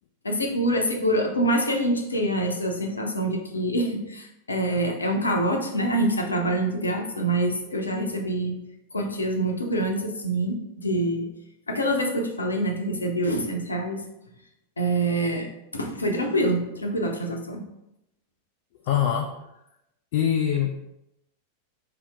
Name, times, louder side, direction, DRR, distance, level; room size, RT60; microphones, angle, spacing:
voice 1, 0.2-8.6 8.9-11.3 11.7-14.0 14.8-15.5 15.7-17.6, right 1 dB, 75° left, 2 dB, 0.7 m, -25 dB
voice 2, 18.9-19.4 20.1-20.8, left 9 dB, 50° left, 3 dB, 0.4 m, -23 dB
5.1 x 2.9 x 3.5 m, 0.86 s
figure-of-eight pair, 90°, 0 cm